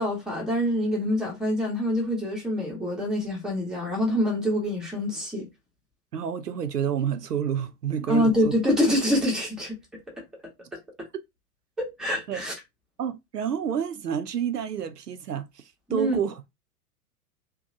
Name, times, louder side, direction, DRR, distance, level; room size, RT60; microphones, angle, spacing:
voice 1, 0.0-5.5 8.1-9.8 11.8-12.5 15.9-16.2, equal, ahead, 0.7 m, -25 dB
voice 2, 6.1-8.5 12.3-12.4 13.0-15.5 15.9-16.5, right 8 dB, 80° right, 0.6 m, -29 dB
2.7 x 2.1 x 2.6 m
figure-of-eight pair, 105°, 47 cm